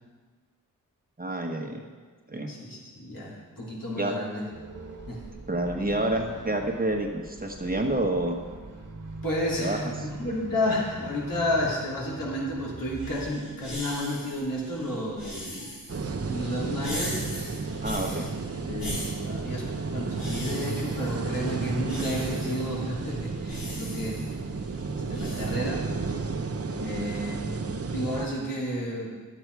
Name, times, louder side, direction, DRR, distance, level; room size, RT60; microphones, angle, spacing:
voice 1, 1.2-1.8 2.3-2.5 4.0-4.1 5.5-8.4 9.6-9.8 17.8-18.3, right 1 dB, 25° right, 2 dB, 1.4 m, -28 dB
voice 2, 2.5-4.4 5.1-5.3 9.2-15.8 16.2-17.5 18.0-18.3 18.7-24.3 24.9-26.2 26.8-27.5 27.9-29.1, left 1 dB, 70° left, -4 dB, 3.1 m, -31 dB
sound 1, 4.5-13.3, right 2 dB, 60° right, 1.5 m, -42 dB
sound 2, 12.9-25.5, left 1 dB, 85° left, 3.4 m, -40 dB
sound 3, 15.9-28.3, right 4 dB, 45° right, 0.8 m, -32 dB
11.5 x 8.2 x 4.7 m, 1.5 s
cardioid pair, 50°, 35 cm